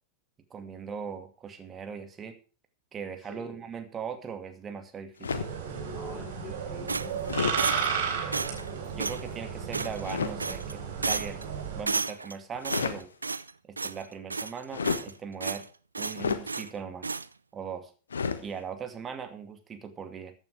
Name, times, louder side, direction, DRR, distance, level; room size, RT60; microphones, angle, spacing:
voice 1, 0.5-2.4 2.9-5.4 8.9-11.4 11.8-13.1 13.7-15.7 16.0-17.1 17.5-17.9 18.4-20.3, right 7 dB, 20° right, 7 dB, 2.4 m, -39 dB
voice 2, 3.3-3.6 5.6-8.2, left 5 dB, 35° left, 0 dB, 4.8 m, -47 dB
sound 1, 5.2-5.6 7.2-7.6 10.0-10.4 12.5-13.0 14.7-15.1 16.1-16.5 18.1-18.4, left 5 dB, 70° left, 1.2 m, -30 dB
sound 2, 5.3-11.8, right 7 dB, 60° right, 3.9 m, -33 dB
sound 3, 6.9-8.0 8.3-8.7 9.0-9.2 9.7-10.1 10.4-10.7 11.0-11.4 11.9-12.3 12.6-13.5 13.8-14.0 14.3-15.1 15.4-15.7 15.9-16.7 17.0-17.3, right 4 dB, 80° right, 0.5 m, -32 dB
14.5 x 9.1 x 4.9 m, 0.36 s
figure-of-eight pair, 90°, 0 cm